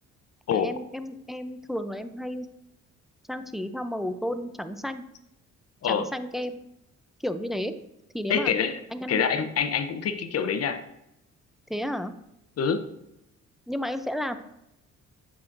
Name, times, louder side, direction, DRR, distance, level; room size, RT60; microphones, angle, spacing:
voice 1, 0.5-2.5 3.3-5.0 5.8-6.6 7.2-7.7 8.1-8.5 8.9-9.2 11.7-12.1 13.7-14.4, equal, ahead, 9 dB, 0.5 m, -32 dB
voice 2, 8.3-8.8 9.1-10.8 12.6-12.8, left 7 dB, 55° left, 10 dB, 0.7 m, -26 dB
8.3 x 6.1 x 2.6 m, 0.85 s
cardioid pair, 90°, 30 cm